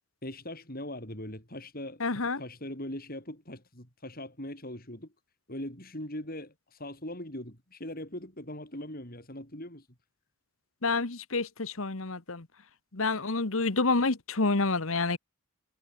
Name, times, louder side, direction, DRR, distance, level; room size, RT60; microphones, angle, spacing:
voice 1, 0.2-2.0 2.4-5.1 5.5-9.9, left 1 dB, 40° left, 7.6 m, -40 dB
voice 2, 2.0-2.4 10.8-12.4 12.9-15.2, left 3 dB, 70° left, 1.5 m, -28 dB
head